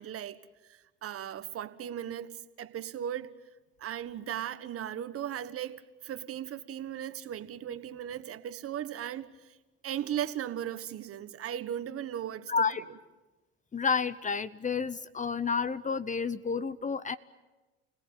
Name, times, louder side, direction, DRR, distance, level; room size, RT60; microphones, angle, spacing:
voice 1, 0.0-3.3 3.8-9.6 9.8-12.7, right 10 dB, 45° right, 1.5 m, -37 dB
voice 2, 12.5-12.8 13.7-17.2, left 5 dB, 25° left, 0.8 m, -30 dB
29.0 x 18.0 x 9.2 m
hypercardioid pair, 70°, 31 cm